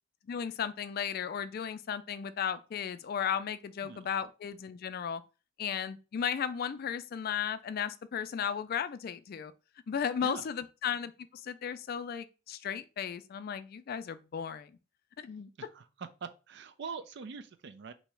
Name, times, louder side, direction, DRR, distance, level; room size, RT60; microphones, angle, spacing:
voice 1, 0.3-5.2 5.6-9.5 9.9-14.7 15.2-15.5, left 8 dB, 50° left, 0.3 m, -35 dB
voice 2, 15.6-17.9, right 5 dB, 60° right, 0.4 m, -43 dB
3.0 x 2.7 x 4.5 m
head